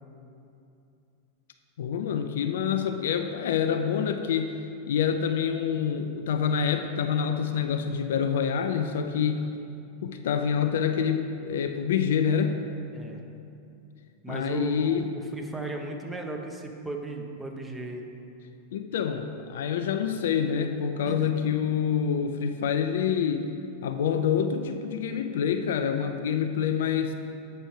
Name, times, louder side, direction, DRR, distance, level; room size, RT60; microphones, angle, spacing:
voice 1, 1.8-9.5 10.0-12.6 14.3-15.1 18.7-23.5 23.8-27.1, left 7 dB, 60° left, 7 dB, 0.4 m, -27 dB
voice 2, 14.2-18.0 21.1-21.3, right 2 dB, 10° right, 2 dB, 0.9 m, -36 dB
7.9 x 6.2 x 4.8 m, 2.6 s
figure-of-eight pair, 90°, 0 cm